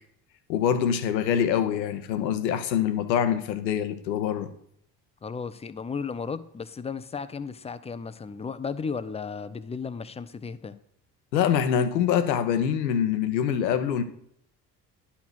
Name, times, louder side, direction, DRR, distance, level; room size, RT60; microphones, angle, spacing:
voice 1, 0.5-4.5 11.3-14.0, left 8 dB, 80° left, 0.9 m, -25 dB
voice 2, 5.2-10.8, left 5 dB, 15° left, 0.4 m, -34 dB
10.5 x 4.2 x 6.1 m
hypercardioid pair, 55°, 50 cm